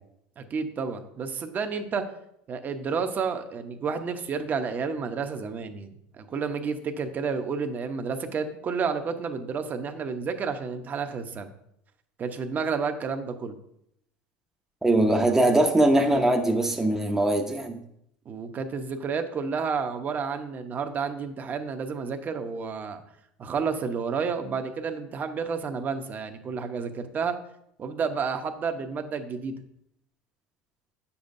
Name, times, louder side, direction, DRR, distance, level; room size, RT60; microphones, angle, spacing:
voice 1, 0.4-2.0 2.5-11.5 12.2-13.6 18.3-23.0 23.4-27.4 27.8-29.6, right 5 dB, 35° right, 6 dB, 0.9 m, -30 dB
voice 2, 14.8-17.8, right 1 dB, 10° right, 2 dB, 0.8 m, -21 dB
9.4 x 7.1 x 2.7 m, 0.75 s
supercardioid pair, 100°, 5 cm